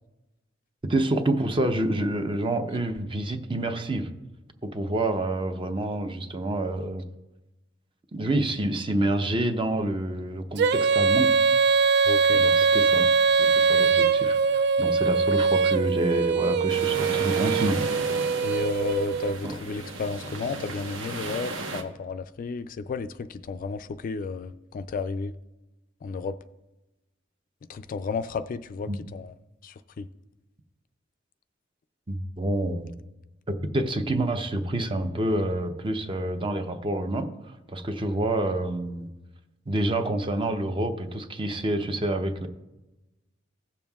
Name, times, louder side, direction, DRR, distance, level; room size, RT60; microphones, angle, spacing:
voice 1, 0.8-4.1 4.6-7.0 8.1-11.3 12.3-13.1 13.4-17.8 19.4-19.5 28.9-29.0 32.1-32.9 33.5-37.3 37.7-39.1 39.7-42.5, right 1 dB, 25° right, 0.7 m, -28 dB
Female singing, 10.6-19.4, right 5 dB, 60° right, 0.3 m, -22 dB
voice 2, 12.1-12.5 18.4-25.3 26.0-26.4 27.7-29.3 29.6-30.1, left 4 dB, 45° left, 0.3 m, -32 dB
sound 1, 16.7-21.8, right 2 dB, 90° right, 1.0 m, -34 dB
16.5 x 7.1 x 2.3 m
head